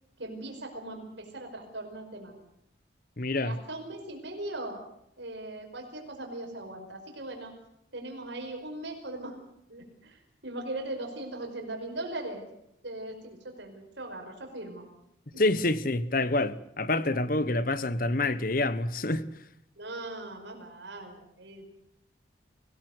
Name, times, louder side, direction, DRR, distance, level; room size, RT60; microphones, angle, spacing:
voice 1, 0.2-2.4 3.3-4.8 5.2-7.5 7.9-9.4 9.7-12.4 12.8-14.8 19.8-21.6, right 2 dB, 70° right, 5.3 m, -39 dB
voice 2, 3.2-3.6 15.4-19.3, left 2 dB, 45° left, 1.1 m, -27 dB
24.5 x 17.0 x 8.1 m
head